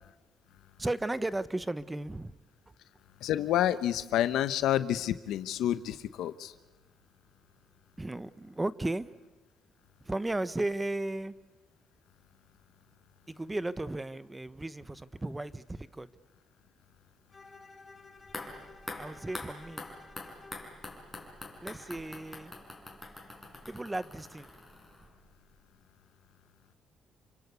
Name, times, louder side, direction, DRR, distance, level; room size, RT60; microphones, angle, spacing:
voice 1, 0.8-2.4 8.0-9.1 10.0-11.3 13.3-16.1 18.9-19.8 21.6-22.5 23.7-24.5, right 2 dB, 15° right, 1.0 m, -35 dB
voice 2, 3.2-6.5, left 12 dB, 85° left, 1.1 m, -29 dB
Bowed string instrument, 17.3-20.7, left 3 dB, 30° left, 2.7 m, -54 dB
sound 1, 18.2-25.3 25.6-25.7, left 2 dB, 10° left, 5.7 m, -45 dB
29.0 x 24.0 x 8.3 m
cardioid pair, 90°, 0 cm